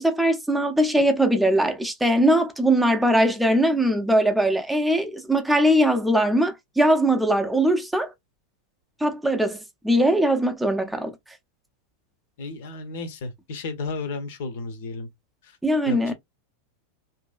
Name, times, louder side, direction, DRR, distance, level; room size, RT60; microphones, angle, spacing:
voice 1, 0.0-8.1 9.0-11.1 15.6-16.1, right 1 dB, 5° right, 0.6 m, -21 dB
voice 2, 12.4-15.1 15.4-15.6 15.9-16.1, left 3 dB, 55° left, 0.8 m, -33 dB
3.0 x 2.7 x 2.4 m
figure-of-eight pair, 90°, 0 cm